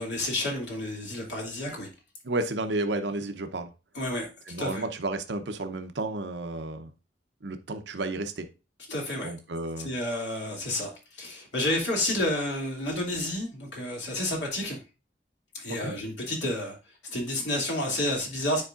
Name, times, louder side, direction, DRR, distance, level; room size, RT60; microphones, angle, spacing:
voice 1, 0.0-1.9 3.9-4.3 4.6-4.8 8.9-9.3 9.8-14.8 15.5-16.8 17.0-18.6, left 1 dB, 90° left, -1 dB, 2.6 m, -30 dB
voice 2, 2.2-3.7 4.5-6.9 7.4-8.5 9.2-9.9 15.7-15.9, right 2 dB, 80° right, 7 dB, 0.8 m, -32 dB
9.8 x 4.7 x 2.5 m, 0.30 s
head